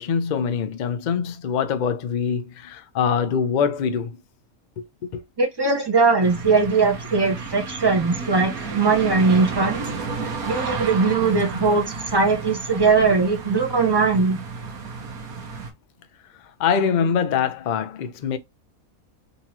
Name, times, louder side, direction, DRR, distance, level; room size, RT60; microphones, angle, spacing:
voice 1, 0.0-4.2 4.8-5.2 16.6-18.4, left 7 dB, 70° left, 0.4 m, -24 dB
voice 2, 5.4-9.8 10.5-14.4, right 4 dB, 20° right, 1.1 m, -20 dB
sound 1, 6.2-15.7, right 4 dB, 85° right, 1.5 m, -32 dB
3.9 x 3.0 x 2.7 m
omnidirectional pair, 1.5 m